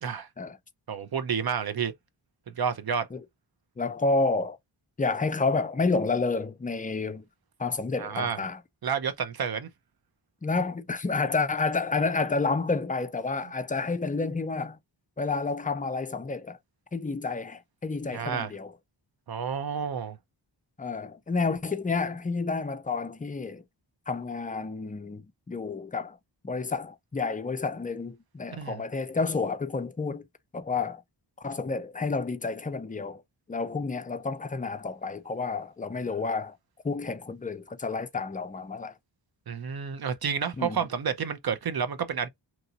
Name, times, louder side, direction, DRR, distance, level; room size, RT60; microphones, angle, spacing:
voice 1, 0.9-1.9 2.5-3.1 8.0-8.4 8.8-9.7 18.1-18.5 19.3-20.2 28.5-28.8 39.5-42.3, right 7 dB, 50° right, 0.6 m, -30 dB
voice 2, 3.8-4.6 5.0-7.2 7.6-8.6 10.4-14.8 15.2-16.6 16.9-18.7 20.8-23.6 24.1-26.2 26.4-30.3 30.5-31.0 31.4-33.2 33.5-36.6 36.8-38.9 40.6-40.8, left 4 dB, 20° left, 0.4 m, -30 dB
2.9 x 2.6 x 2.7 m
wide cardioid pair, 90°, 48 cm